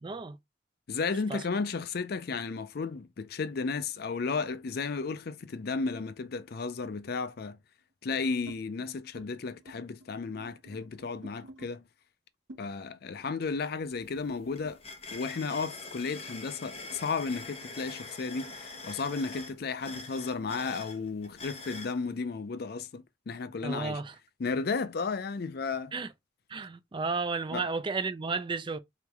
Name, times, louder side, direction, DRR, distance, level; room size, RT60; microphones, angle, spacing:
voice 1, 0.0-0.4 1.3-1.4 23.6-24.1 25.9-26.1 26.5-28.8, right 4 dB, 25° right, 0.4 m, -33 dB
voice 2, 0.9-7.6 8.0-11.8 12.6-14.8 15.1-24.0 24.4-25.9 27.5-27.7, left 4 dB, 55° left, 0.4 m, -34 dB
sound 1, 3.9-5.5 6.8-7.1 7.8-8.6 9.0-9.3 9.6-11.7 12.5-15.4 15.7-20.6, right 1 dB, 75° right, 0.9 m, -54 dB
sound 2, 13.4-13.5 13.8-22.0, left 3 dB, 30° left, 0.9 m, -44 dB
4.0 x 3.1 x 3.4 m
head